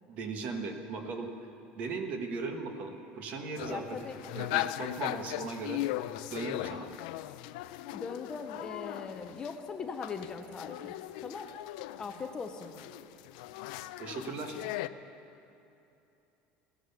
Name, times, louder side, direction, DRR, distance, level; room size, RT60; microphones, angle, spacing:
voice 1, 0.1-1.3 1.7-3.8 4.3-5.9 6.3-6.9 14.0-14.6, right 4 dB, 40° right, 5 dB, 1.2 m, -38 dB
sound 1, 3.6-9.5 10.0-14.9, left 15 dB, 80° left, 0.4 m, -38 dB
voice 2, 3.7-4.2 7.9-11.5 12.0-12.8, left 5 dB, 20° left, 5 dB, 0.6 m, -40 dB
16.5 x 11.0 x 6.8 m, 2.9 s
cardioid pair, 175°, 4 cm